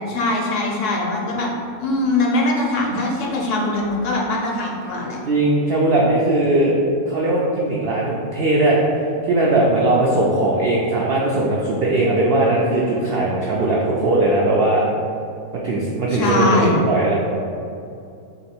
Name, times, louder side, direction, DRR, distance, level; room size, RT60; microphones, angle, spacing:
voice 1, 0.1-1.5 1.8-5.2 16.1-16.8, left 2 dB, 65° left, -2 dB, 0.9 m, -21 dB
voice 2, 5.3-6.8 7.1-14.8 15.5-17.1, right 2 dB, 80° right, -4 dB, 0.5 m, -19 dB
3.0 x 2.8 x 4.3 m, 2.5 s
omnidirectional pair, 1.5 m